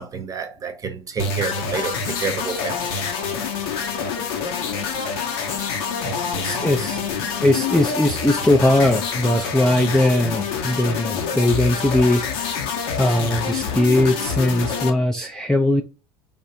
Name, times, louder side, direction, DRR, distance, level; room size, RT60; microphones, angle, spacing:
voice 1, 0.0-2.9 5.5-5.6 6.1-6.2 6.5-6.7, right 5 dB, 25° right, 0.8 m, -29 dB
sound 1, 1.2-14.9, left 6 dB, 65° left, 0.8 m, -26 dB
voice 2, 6.3-7.1 7.4-12.2 13.0-15.8, left 1 dB, 5° left, 0.4 m, -19 dB
3.5 x 2.4 x 4.0 m
hypercardioid pair, 75°, 13 cm